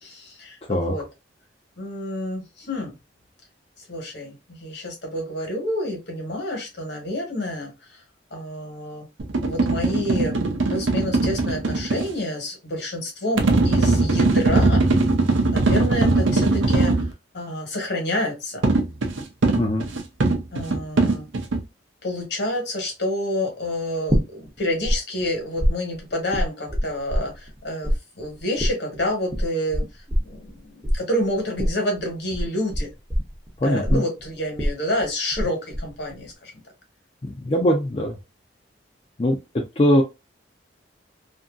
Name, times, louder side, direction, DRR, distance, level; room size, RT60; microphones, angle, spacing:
voice 1, 0.0-1.0 1.8-2.9 3.8-8.0 8.3-9.0 9.4-14.8 15.5-17.1 17.3-18.6 20.5-21.3 22.0-29.8 30.2-32.9 33.6-36.5, left 1 dB, 60° left, 2 dB, 1.2 m, -28 dB
sound 1, 9.2-12.1 13.4-17.1 18.6-21.6, right 2 dB, 85° right, 0.6 m, -20 dB
sound 2, 24.1-25.0 25.2-27.6 27.8-35.5 35.7-36.3, equal, 15° right, 0.6 m, -24 dB
voice 2, 33.6-34.0 37.2-38.2 39.2-40.0, left 1 dB, 30° left, -1 dB, 0.4 m, -21 dB
2.7 x 2.5 x 2.4 m, 0.24 s
head